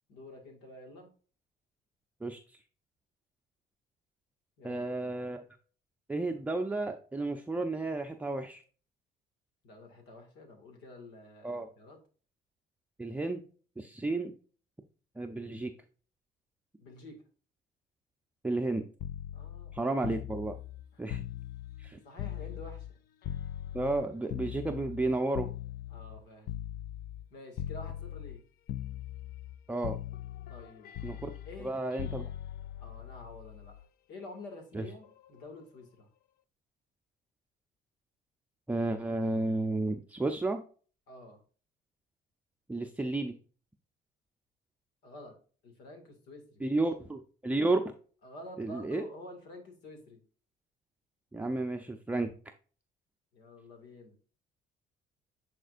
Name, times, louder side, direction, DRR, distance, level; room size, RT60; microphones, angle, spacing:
voice 1, 0.1-1.1 4.6-5.1 9.6-12.0 16.8-17.2 19.3-20.0 20.9-21.0 22.0-22.9 25.9-26.5 27.3-28.4 30.5-30.9 31.5-31.8 32.8-36.1 41.1-41.4 45.0-45.4 45.6-46.6 48.2-50.2 53.3-54.2, left 2 dB, 90° left, 4 dB, 2.1 m, -49 dB
voice 2, 4.6-5.4 6.1-8.6 11.4-11.7 13.0-13.4 13.8-14.3 15.2-15.7 18.4-18.8 19.7-20.6 21.0-21.2 21.8-22.0 23.7-25.5 29.7-30.0 31.0-31.3 31.6-32.3 34.7-34.8 38.7-40.6 42.7-43.3 46.6-47.8 48.6-49.0 51.3-52.3, right 2 dB, 10° right, 4 dB, 0.5 m, -32 dB
sound 1, 19.0-22.9 23.2-27.3 27.6-28.4 28.7-29.6 29.8-33.8 35.0-35.3, left 12 dB, 65° left, 0.5 m, -40 dB
9.0 x 4.3 x 2.5 m, 0.40 s
cardioid pair, 110°, 17 cm